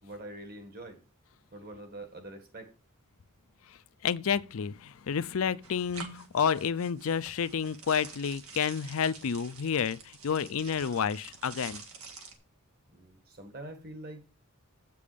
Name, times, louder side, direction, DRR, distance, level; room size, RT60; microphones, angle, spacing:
voice 1, 0.0-1.0 1.5-2.7 12.9-14.3, right 1 dB, 45° right, 1.8 m, -45 dB
voice 2, 4.0-11.8, left 7 dB, 65° left, 0.5 m, -30 dB
sound 1, 5.6-12.4, right 4 dB, 70° right, 1.9 m, -47 dB
8.4 x 6.9 x 5.1 m
head